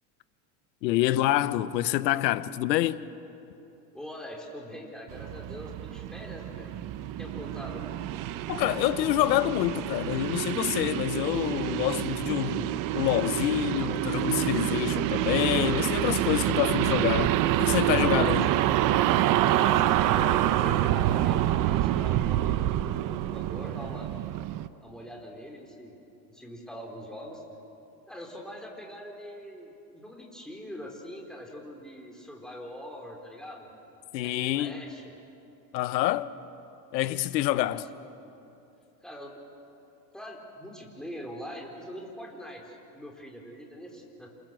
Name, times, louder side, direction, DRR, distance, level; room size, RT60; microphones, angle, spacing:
voice 1, 0.8-3.0 8.5-18.5 34.1-34.7 35.7-36.3 36.9-37.8, left 14 dB, 90° left, 1.2 m, -27 dB
voice 2, 3.9-7.8 12.5-13.0 18.1-18.7 19.5-24.1 24.8-25.9 26.3-27.4 28.1-33.7 34.2-35.1 37.6-37.9 39.0-39.4 40.1-44.3, equal, ahead, 4.3 m, -43 dB
sound 1, 5.1-24.7, right 13 dB, 40° right, 0.9 m, -27 dB
28.0 x 27.0 x 7.8 m
supercardioid pair, 140°, 50 cm